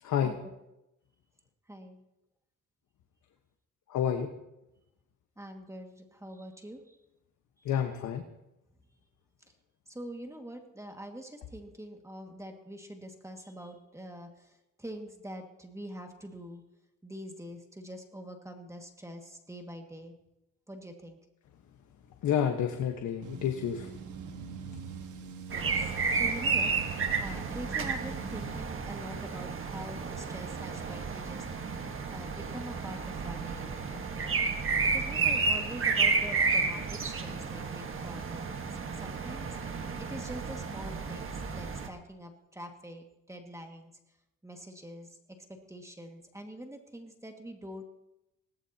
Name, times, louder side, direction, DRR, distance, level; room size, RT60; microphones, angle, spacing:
voice 1, 0.0-0.3 3.9-4.3 7.6-8.2 22.2-23.9, left 9 dB, 75° left, 4 dB, 1.4 m, -29 dB
voice 2, 1.7-2.0 5.4-7.0 7.6-7.7 9.9-16.6 17.0-20.2 20.7-21.2 25.5-31.5 32.1-34.4 34.8-43.9 44.4-45.2 45.5-47.8, equal, 10° right, 3 dB, 2.1 m, -45 dB
sound 1, 23.2-28.6, right 6 dB, 80° right, 1.7 m, -43 dB
sound 2, 25.5-41.9, right 4 dB, 45° right, 1.7 m, -31 dB
20.5 x 17.0 x 3.0 m, 0.89 s
cardioid pair, 90°, 30 cm